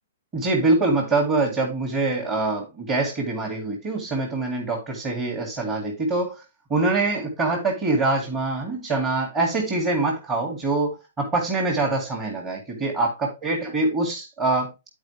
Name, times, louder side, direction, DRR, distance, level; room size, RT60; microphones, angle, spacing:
voice 1, 0.3-6.4 6.7-14.7, right 3 dB, 20° right, 2.2 m, -24 dB
10.5 x 4.9 x 3.3 m
hypercardioid pair, 160°, 0 cm